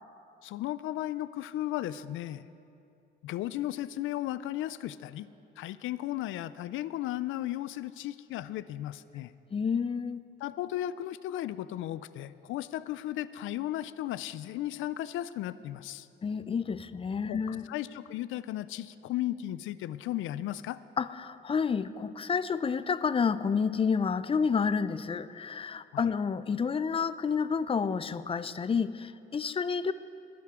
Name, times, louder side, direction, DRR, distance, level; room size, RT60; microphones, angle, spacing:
voice 1, 0.4-2.5 3.2-5.3 5.6-9.3 10.4-16.1 17.3-20.8 25.9-26.1, left 13 dB, 80° left, 16 dB, 0.4 m, -35 dB
voice 2, 9.5-10.2 16.2-17.7 21.0-29.9, left 6 dB, 30° left, 15 dB, 0.5 m, -29 dB
20.5 x 10.5 x 3.7 m, 2.6 s
cardioid pair, 90°, 20 cm